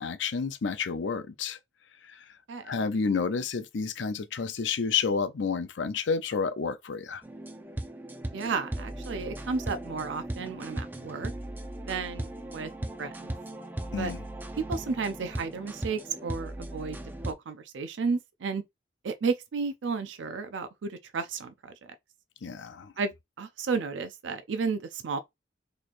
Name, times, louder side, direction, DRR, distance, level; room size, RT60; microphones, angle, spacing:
voice 1, 0.0-1.6 2.1-2.2 2.7-7.2 13.9-14.2 22.4-22.9, left 5 dB, 80° left, 0.5 m, -30 dB
sound 1, 7.2-17.3, right 1 dB, 10° right, 0.4 m, -38 dB
voice 2, 8.3-11.3 11.9-12.7 13.0-13.4 13.9-14.1 14.6-17.0 17.2-18.6 19.0-21.9 23.0-25.2, right 5 dB, 85° right, 0.4 m, -33 dB
4.1 x 3.1 x 2.5 m
head